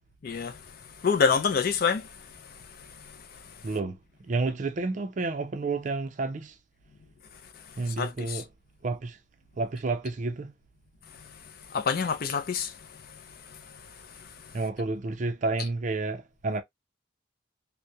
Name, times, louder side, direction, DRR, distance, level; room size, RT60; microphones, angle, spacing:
voice 1, 1.0-2.0 8.0-8.4 11.7-12.7, left 6 dB, 50° left, 0.4 m, -25 dB
voice 2, 3.6-4.0 4.2-6.5 7.8-8.5 8.8-9.2 9.6-10.5 14.5-16.6, right 3 dB, 40° right, 0.4 m, -30 dB
2.3 x 2.0 x 2.6 m
head